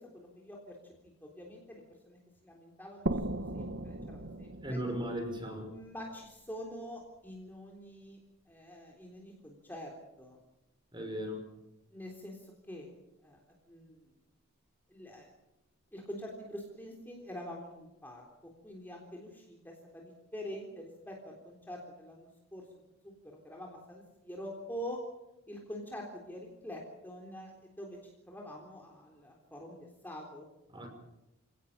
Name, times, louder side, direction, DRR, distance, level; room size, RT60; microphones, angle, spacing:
voice 1, 0.1-0.8 1.2-4.8 5.7-8.2 8.5-10.4 11.9-12.9 13.2-13.4 13.7-14.1 14.9-15.3 15.9-18.2 18.6-22.6 23.0-25.0 25.5-28.0 28.3-30.5, equal, 10° left, -1 dB, 3.6 m, -45 dB
sound 1, 3.1-6.6, right 1 dB, 55° right, 1.3 m, -38 dB
voice 2, 4.6-5.7 10.9-11.4 30.7-30.9, equal, 20° right, 4 dB, 5.9 m, -36 dB
28.5 x 18.0 x 7.4 m, 0.93 s
head